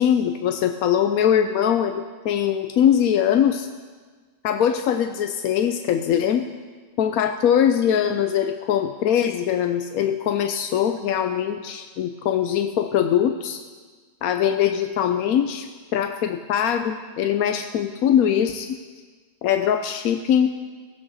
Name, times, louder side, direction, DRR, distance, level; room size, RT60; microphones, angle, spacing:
voice 1, 0.0-3.7 4.4-6.5 7.0-13.6 14.2-15.7 15.9-18.8 19.4-20.5, left 9 dB, 65° left, 7 dB, 0.9 m, -22 dB
16.0 x 16.0 x 4.0 m, 1.4 s
omnidirectional pair, 2.1 m